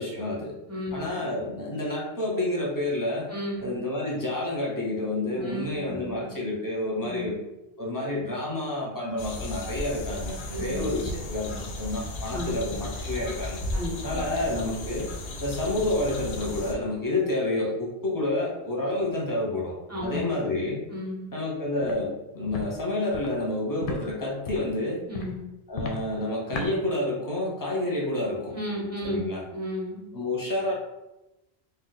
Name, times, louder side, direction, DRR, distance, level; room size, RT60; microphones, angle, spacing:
voice 1, 0.0-0.5 0.9-3.3 3.6-7.4 7.8-13.6 14.0-15.1 15.4-19.7 20.0-20.8 21.3-25.0 25.7-28.5 29.0-29.4 30.1-30.7, left 1 dB, 25° left, -4 dB, 0.6 m, -29 dB
voice 2, 0.7-1.1 3.3-3.8 5.3-6.3 7.0-7.4 10.5-11.0 12.3-12.6 13.7-14.4 19.9-20.3 20.9-21.3 25.1-25.4 28.5-29.2 29.5-30.1, left 1 dB, 15° right, -5 dB, 0.7 m, -34 dB
sound 1, 9.2-16.7, left 1 dB, 85° left, 0.9 m, -35 dB
Walk footsteps, 21.8-22.0 22.5-22.6 23.1-23.3 23.8-24.0 24.4-24.7 25.1-25.3 25.7-26.0 26.5-26.7, left 4 dB, 60° left, 0.6 m, -33 dB
2.4 x 2.2 x 3.9 m, 0.96 s
omnidirectional pair, 1.1 m